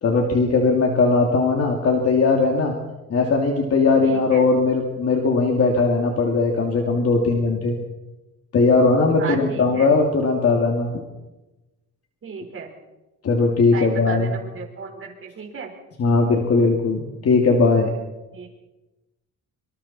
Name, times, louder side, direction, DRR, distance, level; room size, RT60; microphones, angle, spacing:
voice 1, 0.0-2.8 3.1-7.8 8.5-10.9 13.2-14.3 16.0-17.9, left 3 dB, 50° left, 1 dB, 2.8 m, -19 dB
voice 2, 4.0-4.5 9.1-9.9 12.2-12.7 13.7-15.7 18.3-18.5, right 5 dB, 40° right, 1 dB, 5.0 m, -34 dB
26.0 x 26.0 x 4.4 m, 1.1 s
cardioid pair, 155°, 32 cm